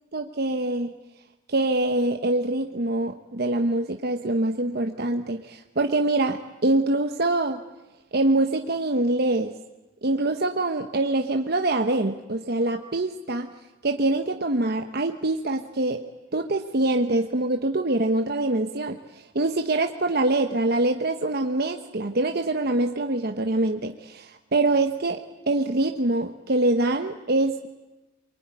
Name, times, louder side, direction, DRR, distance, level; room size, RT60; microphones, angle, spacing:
voice 1, 0.1-0.9 1.5-7.6 8.1-9.5 10.0-13.5 13.8-16.0 16.3-27.7, right 2 dB, 50° right, 5 dB, 1.1 m, -24 dB
24.0 x 23.0 x 9.8 m, 1.1 s
head